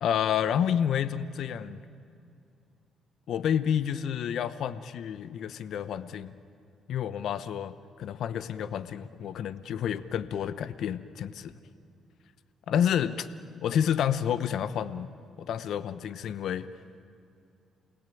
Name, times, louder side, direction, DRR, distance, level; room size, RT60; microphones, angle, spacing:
voice 1, 0.0-1.8 3.3-6.3 6.9-11.6 12.7-13.3 13.6-15.1 15.4-16.7, left 9 dB, 70° left, 14 dB, 0.8 m, -29 dB
28.5 x 19.0 x 9.2 m, 2.5 s
cardioid pair, 90°, 0 cm